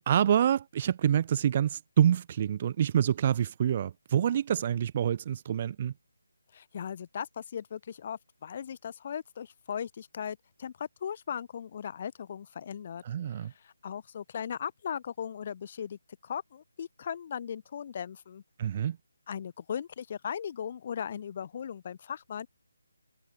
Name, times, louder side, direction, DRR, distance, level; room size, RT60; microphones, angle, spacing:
voice 1, 0.0-5.9 13.0-13.5 18.6-19.0, right 9 dB, 30° right, 0.9 m, -27 dB
voice 2, 6.5-13.0 13.6-18.4 19.3-22.5, left 8 dB, 35° left, 4.7 m, -38 dB
figure-of-eight pair, 155°, 0 cm